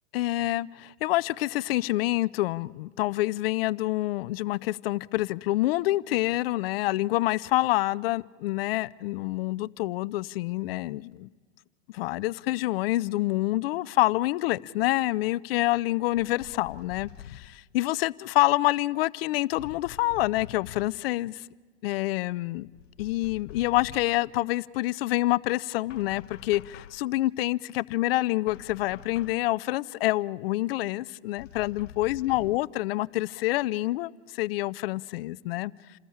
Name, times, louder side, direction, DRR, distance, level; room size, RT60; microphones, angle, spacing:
voice 1, 0.1-11.3 11.9-21.4 21.8-22.7 23.0-35.7, left 18 dB, 55° left, 0.6 m, -27 dB
sound 1, 16.2-17.6 19.6-21.0 22.7-24.2 25.9-27.1 28.5-29.5 31.4-32.7, left 10 dB, 85° left, 0.9 m, -46 dB
28.0 x 13.5 x 8.7 m
hypercardioid pair, 125°, 36 cm